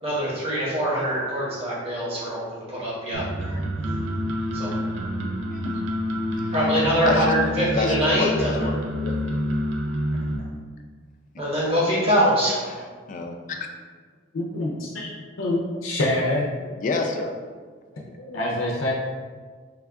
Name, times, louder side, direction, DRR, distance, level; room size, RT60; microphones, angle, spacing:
voice 1, 0.0-3.6 4.5-4.7 6.5-8.7 11.4-12.8, equal, 30° right, -7 dB, 1.0 m, -24 dB
sound 1, 3.1-10.4, equal, 75° right, 0.5 m, -27 dB
voice 2, 7.0-7.3 7.7-9.1 13.1-13.7 15.0-15.1 16.8-17.4, left 3 dB, 40° left, 4 dB, 0.3 m, -28 dB
voice 3, 14.3-15.1 15.4-16.5 18.2-18.9, left 1 dB, 85° left, -3 dB, 0.5 m, -25 dB
3.4 x 2.3 x 3.5 m, 1.5 s
head